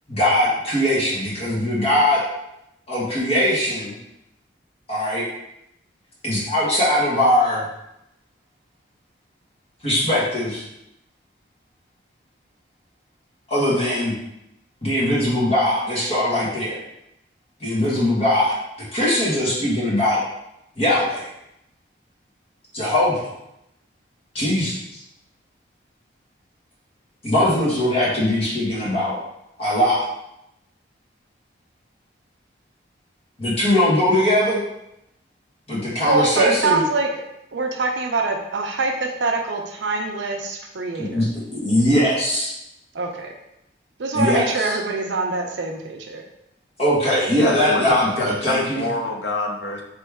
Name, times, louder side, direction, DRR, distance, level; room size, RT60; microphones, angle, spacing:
voice 1, 0.1-2.2 2.9-3.9 4.9-5.2 6.2-7.6 9.8-10.6 13.5-14.1 14.8-16.8 17.6-18.5 18.9-20.2 20.8-21.3 22.7-23.3 24.3-24.7 27.2-29.1 29.6-30.1 33.4-34.6 35.7-36.8 40.9-41.3 41.5-42.5 44.1-44.7 46.8-48.8, left 1 dB, 30° left, -7 dB, 1.3 m, -20 dB
voice 2, 36.0-37.1 37.5-41.2 42.9-43.3 44.0-46.2, right 3 dB, 65° right, 2 dB, 0.5 m, -24 dB
voice 3, 47.4-49.8, left 2 dB, 65° left, 2 dB, 0.6 m, -26 dB
4.6 x 3.0 x 3.4 m, 0.83 s
head